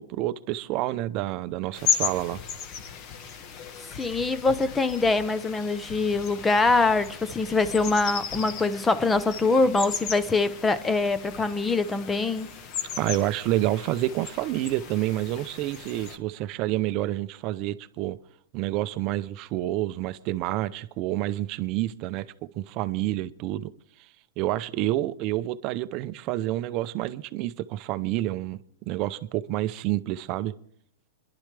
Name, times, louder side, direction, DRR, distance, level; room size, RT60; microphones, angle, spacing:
voice 1, 0.0-2.4 13.0-18.2 18.5-23.7 24.4-28.6 28.9-30.5, right 15 dB, 40° right, 0.6 m, -28 dB
sound 1, 1.7-16.2, left 7 dB, 40° left, 1.2 m, -35 dB
voice 2, 4.0-12.5, left 3 dB, 10° left, 0.7 m, -24 dB
23.0 x 11.5 x 3.3 m
hypercardioid pair, 145°, 0 cm